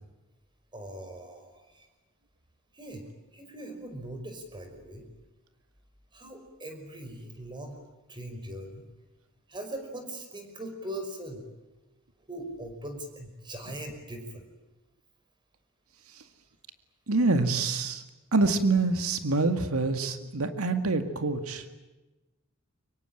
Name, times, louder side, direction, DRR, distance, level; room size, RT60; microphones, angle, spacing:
voice 1, 0.7-1.9 2.7-3.1 3.3-5.1 6.1-7.8 8.1-8.8 9.5-11.4 12.3-14.5, right 1 dB, 20° right, 5 dB, 5.5 m, -40 dB
voice 2, 17.1-18.0 18.3-21.7, right 3 dB, 75° right, 8 dB, 2.0 m, -26 dB
25.0 x 23.0 x 9.0 m, 1.1 s
head